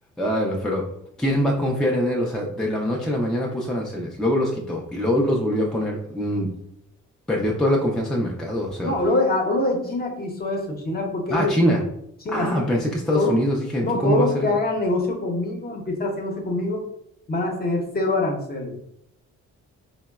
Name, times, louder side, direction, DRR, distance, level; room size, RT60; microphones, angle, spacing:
voice 1, 0.2-0.8 1.2-6.5 7.3-8.9 11.3-11.8 12.3-14.5, equal, ahead, -2 dB, 0.4 m, -23 dB
voice 2, 8.8-11.8 12.2-12.7 13.1-13.4 13.8-16.9 17.3-18.8, left 2 dB, 30° left, 1 dB, 0.7 m, -24 dB
3.8 x 2.0 x 2.3 m, 0.76 s
cardioid pair, 90°, 30 cm